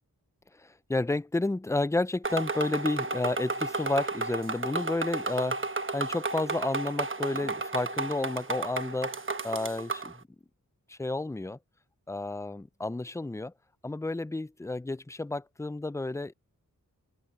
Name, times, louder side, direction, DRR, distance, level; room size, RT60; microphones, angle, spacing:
voice 1, 0.6-5.6 5.9-9.2 9.4-10.2 10.9-11.6 12.1-13.5 13.8-16.3, left 2 dB, 10° left, 0.4 m, -31 dB
sound 1, 2.2-10.1, right 3 dB, 35° right, 1.1 m, -33 dB
open air
wide cardioid pair, 55°, 35 cm